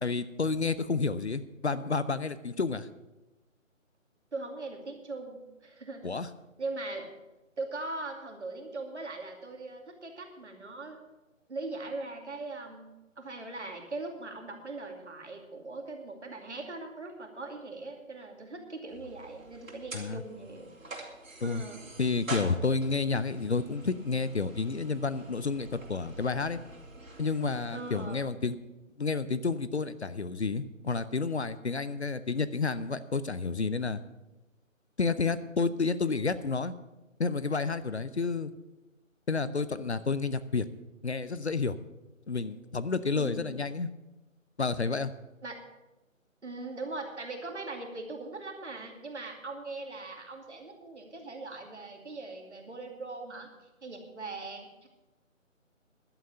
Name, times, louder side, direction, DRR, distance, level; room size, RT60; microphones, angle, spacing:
voice 1, 0.0-2.9 6.0-6.3 19.9-20.2 21.4-21.6 22.0-26.6 27.2-28.6 29.0-34.0 35.0-36.7 37.2-38.5 39.3-40.7 41.0-41.8 42.3-43.9 44.6-45.1, left 4 dB, 55° left, 14 dB, 0.7 m, -30 dB
voice 2, 4.3-6.1 6.6-7.1 7.6-11.0 11.5-12.9 13.2-20.7 21.4-21.8 27.7-28.3 43.1-43.7 45.4-45.6 46.4-53.5 53.8-54.9, right 3 dB, 60° right, 3 dB, 2.6 m, -40 dB
sound 1, 18.9-28.1, right 2 dB, 80° right, 3.4 m, -46 dB
11.5 x 8.1 x 8.1 m, 1.0 s
figure-of-eight pair, 180°, 40 cm